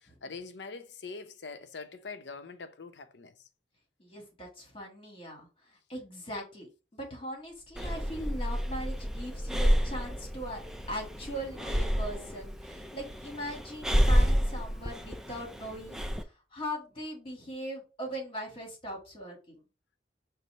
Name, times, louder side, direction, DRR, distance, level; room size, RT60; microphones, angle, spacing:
voice 1, 0.0-3.4, left 4 dB, 75° left, 0.6 m, -43 dB
voice 2, 4.0-5.5 5.9-10.6 10.9-19.5, equal, 30° left, 1.6 m, -40 dB
sound 1, 7.6-14.1, equal, 15° left, 1.2 m, -39 dB
Breathing, 7.8-16.2, equal, 5° right, 0.3 m, -29 dB
5.4 x 2.1 x 4.1 m
head